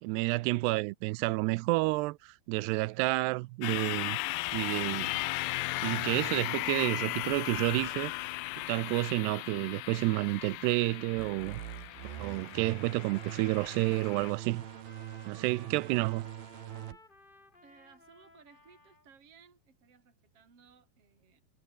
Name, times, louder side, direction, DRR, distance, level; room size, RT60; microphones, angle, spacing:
voice 1, 0.0-4.2 4.5-5.1 5.8-8.1 8.7-11.6 12.2-14.7 15.3-16.3, right 22 dB, 85° right, 2.7 m, -30 dB
sound 1, 3.6-14.3, left 19 dB, 85° left, 2.8 m, -36 dB
sound 2, 11.2-17.0, right 12 dB, 70° right, 3.3 m, -43 dB
Trumpet, 12.3-19.1, left 2 dB, 15° left, 2.1 m, -58 dB
voice 2, 17.6-21.4, right 6 dB, 35° right, 4.9 m, -60 dB
omnidirectional pair, 4.7 m